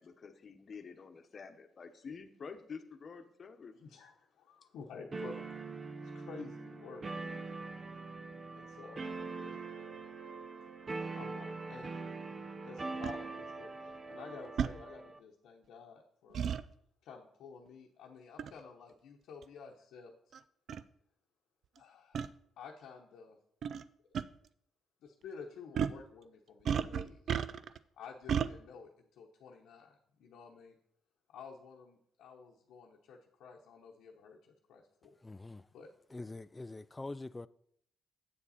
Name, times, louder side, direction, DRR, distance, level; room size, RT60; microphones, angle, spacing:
voice 1, 0.0-3.7, left 5 dB, 50° left, 1.0 m, -48 dB
voice 2, 3.7-5.4 6.0-7.4 8.5-9.0 9.4-9.6 11.1-11.9 12.6-16.4 17.0-20.1 21.8-22.3 22.6-23.4 24.1-24.2 25.0-27.4 27.9-30.8 31.3-35.1 35.7-35.9, left 5 dB, 80° left, 0.9 m, -51 dB
sound 1, 5.1-15.2, right 3 dB, 40° right, 0.8 m, -43 dB
sound 2, 13.0-13.2 14.6-14.8 16.3-16.6 18.4-18.6 19.4-19.5 20.3-20.4 20.7-20.8 22.1-22.3 23.6-23.8 24.1-24.2 25.7-26.0 26.6-27.8 28.3-28.5, right 7 dB, 65° right, 0.4 m, -33 dB
voice 3, 35.2-35.7 36.1-37.5, left 2 dB, 20° left, 0.3 m, -44 dB
8.3 x 7.2 x 4.2 m
cardioid pair, 70°, 0 cm